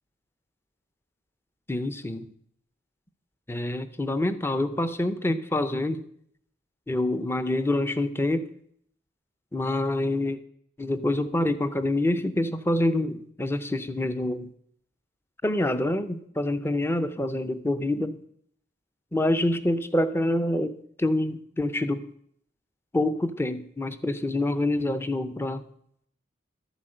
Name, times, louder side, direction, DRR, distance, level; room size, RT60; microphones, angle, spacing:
voice 1, 1.7-2.3 3.5-6.0 6.9-8.5 9.5-10.4 10.8-14.5 15.4-18.2 19.1-22.1 22.9-25.7, left 1 dB, 10° left, 11 dB, 0.6 m, -26 dB
12.5 x 8.2 x 7.6 m, 0.68 s
head